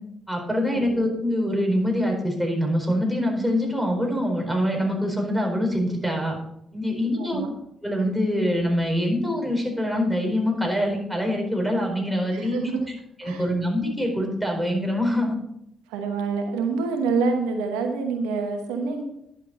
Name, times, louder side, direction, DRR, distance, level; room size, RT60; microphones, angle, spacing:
voice 1, 0.3-6.4 6.7-7.4 7.8-12.6 13.2-15.3, equal, ahead, 1 dB, 4.4 m, -24 dB
voice 2, 7.1-7.5 12.3-12.9 13.2-13.5 15.9-19.0, right 4 dB, 85° right, 4 dB, 1.1 m, -27 dB
10.5 x 7.2 x 4.1 m, 0.76 s
hypercardioid pair, 50°, 0 cm